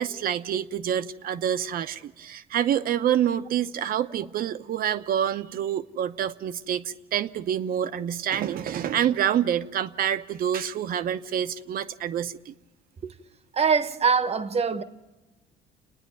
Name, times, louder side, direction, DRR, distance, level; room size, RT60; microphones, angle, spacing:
voice 1, 0.0-12.5, right 9 dB, 60° right, 0.8 m, -27 dB
voice 2, 13.5-14.8, right 5 dB, 40° right, 1.1 m, -23 dB
28.5 x 10.0 x 9.4 m
cardioid pair, 110°, 17 cm